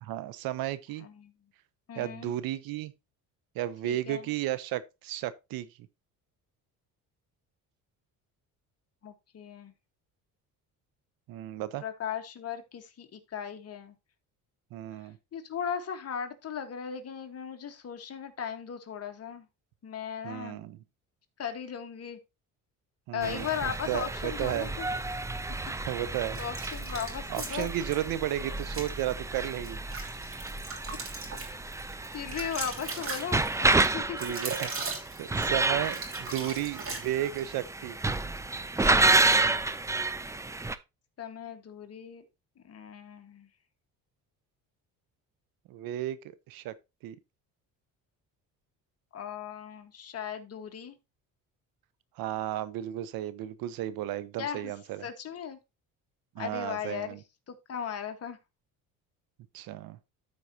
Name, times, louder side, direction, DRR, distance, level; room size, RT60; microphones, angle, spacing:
voice 1, 0.0-1.1 2.0-2.9 3.5-5.7 11.3-11.8 14.7-15.2 20.2-20.8 23.1-24.7 25.9-26.4 27.3-29.8 34.2-34.7 35.2-38.0 45.7-46.7 47.0-47.2 52.2-55.1 56.3-57.2 59.5-60.0, right 13 dB, 80° right, 0.8 m, -33 dB
voice 2, 1.0-1.3 1.9-2.3 3.8-4.3 9.0-9.7 11.8-13.9 15.3-19.5 19.8-20.6 21.4-22.2 23.1-24.9 26.4-27.7 32.1-34.2 38.8-39.0 41.2-42.2 42.6-43.5 49.1-51.0 54.4-54.7 55.0-55.6 56.4-57.2 57.5-58.4, left 8 dB, 45° left, 1.4 m, -37 dB
sound 1, 23.2-40.8, right 3 dB, 10° right, 0.4 m, -30 dB
sound 2, 26.3-28.0 28.6-28.9 29.4-37.5, right 4 dB, 40° right, 2.9 m, -39 dB
13.5 x 4.7 x 2.8 m
cardioid pair, 110°, 35 cm